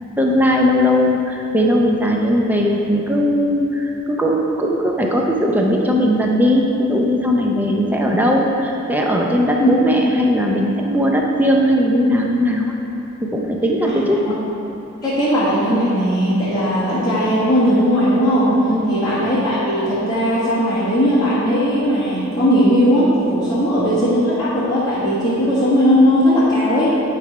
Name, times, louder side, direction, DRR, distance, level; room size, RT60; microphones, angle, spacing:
voice 1, 0.2-12.8 13.2-14.2 18.7-19.0 23.5-23.6, equal, 10° right, -1 dB, 0.5 m, -18 dB
voice 2, 13.8-14.3 15.0-18.6 18.9-27.0, equal, 20° left, -12 dB, 1.4 m, -17 dB
9.0 x 3.4 x 4.8 m, 2.8 s
head